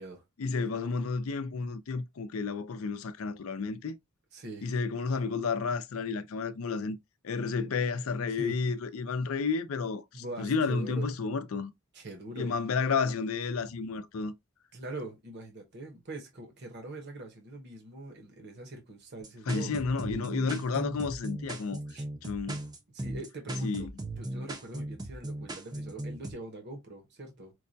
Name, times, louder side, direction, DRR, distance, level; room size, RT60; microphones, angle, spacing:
voice 1, 0.4-4.0 4.6-7.0 7.2-11.7 12.3-14.3 19.5-21.8 22.2-22.6 23.6-23.9, left 4 dB, 80° left, 0.5 m, -31 dB
voice 2, 4.3-4.7 8.3-8.6 10.1-11.1 11.9-12.5 14.7-19.7 20.4-20.6 21.9-22.0 22.9-27.5, right 2 dB, 55° right, 0.9 m, -43 dB
sound 1, 19.2-26.3, right 1 dB, 20° right, 0.5 m, -37 dB
4.7 x 2.2 x 2.6 m
head